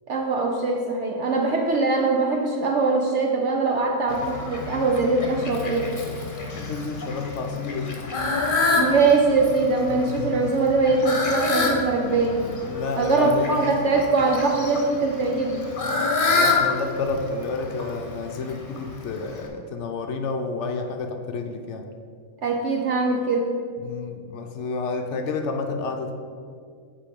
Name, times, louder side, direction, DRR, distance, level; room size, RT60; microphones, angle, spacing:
voice 1, 0.1-6.3 8.8-12.4 13.0-15.6 22.4-23.5, right 3 dB, 60° right, 1 dB, 0.9 m, -22 dB
Fowl, 4.1-19.5, left 3 dB, 40° left, 1.1 m, -28 dB
voice 2, 6.5-8.0 12.7-13.6 16.3-21.9 23.8-26.1, left 4 dB, 65° left, 5 dB, 0.8 m, -30 dB
8.6 x 4.8 x 5.2 m, 2.2 s
omnidirectional pair, 1.5 m